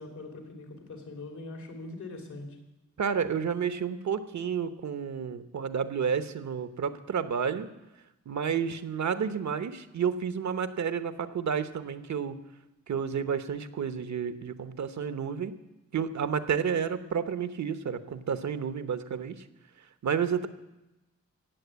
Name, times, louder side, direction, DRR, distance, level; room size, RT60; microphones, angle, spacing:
voice 1, 0.0-2.5, left 2 dB, 85° left, 3 dB, 3.1 m, -42 dB
voice 2, 3.0-7.7 8.3-12.3 12.9-15.5 15.9-19.4 20.0-20.5, right 7 dB, 70° right, 11 dB, 0.9 m, -30 dB
17.0 x 7.7 x 8.1 m, 0.98 s
wide cardioid pair, 110°, 29 cm